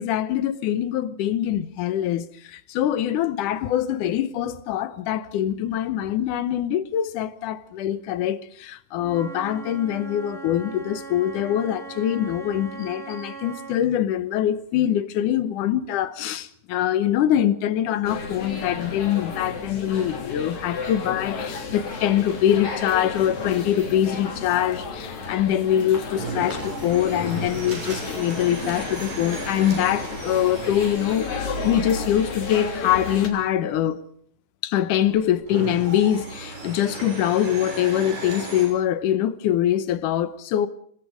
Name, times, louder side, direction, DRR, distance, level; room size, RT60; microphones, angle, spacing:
voice 1, 0.0-34.0 34.6-40.7, left 11 dB, 75° left, 2.4 m, -24 dB
Wind instrument woodwind instrument, 9.0-13.8, right 5 dB, ahead, 3.8 m, -39 dB
sound 1, 18.1-33.3, left 4 dB, 60° left, 4.6 m, -33 dB
sound 2, 23.1-24.0 26.1-33.2 35.0-38.7, right 3 dB, 90° right, 8.2 m, -36 dB
26.0 x 20.5 x 5.1 m
omnidirectional pair, 3.7 m